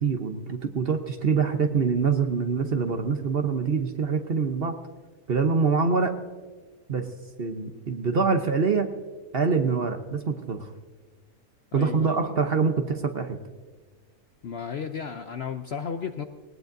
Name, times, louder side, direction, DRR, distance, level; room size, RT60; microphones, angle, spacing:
voice 1, 0.0-4.8 5.3-6.1 6.9-7.1 7.4-8.9 9.3-10.7 11.7-13.4, right 5 dB, 45° right, 6 dB, 0.9 m, -25 dB
voice 2, 11.7-12.3 14.4-16.3, left 7 dB, 60° left, 7 dB, 0.7 m, -34 dB
19.0 x 18.5 x 2.6 m, 1.4 s
omnidirectional pair, 1.6 m